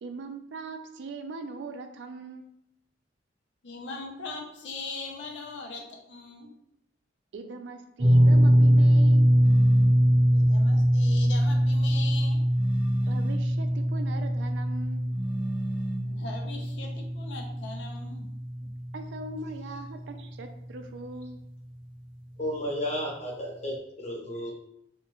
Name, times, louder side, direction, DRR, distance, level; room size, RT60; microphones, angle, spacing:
voice 1, 0.0-2.5 7.3-9.3 13.0-15.0 18.9-21.4, right 3 dB, 80° right, 6 dB, 0.4 m, -40 dB
voice 2, 3.6-6.5 10.3-12.4 16.0-18.3, left 3 dB, 80° left, 1 dB, 0.5 m, -40 dB
sound 1, 8.0-20.2 20.5-20.7 22.4-22.5, equal, 30° right, 0.7 m, -23 dB
sound 2, 9.4-10.0 12.5-13.5 15.1-16.2, right 1 dB, 5° right, 0.3 m, -37 dB
voice 3, 22.4-24.5, equal, 40° left, -2 dB, 0.8 m, -33 dB
2.8 x 2.3 x 2.8 m, 0.78 s
head